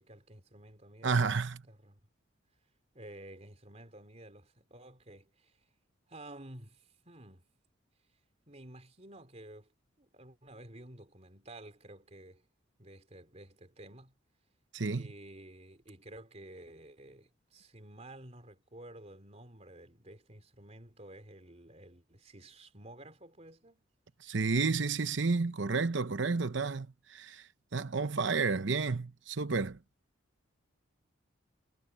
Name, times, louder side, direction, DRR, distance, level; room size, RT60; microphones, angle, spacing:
voice 1, 0.0-1.3 1.7-2.0 2.9-5.6 6.1-7.5 8.5-9.7 10.0-12.4 12.8-14.1 14.9-23.8, right 1 dB, 35° right, 3.6 m, -52 dB
voice 2, 1.0-1.6 14.7-15.1 24.2-29.8, right 4 dB, 65° right, 0.8 m, -31 dB
head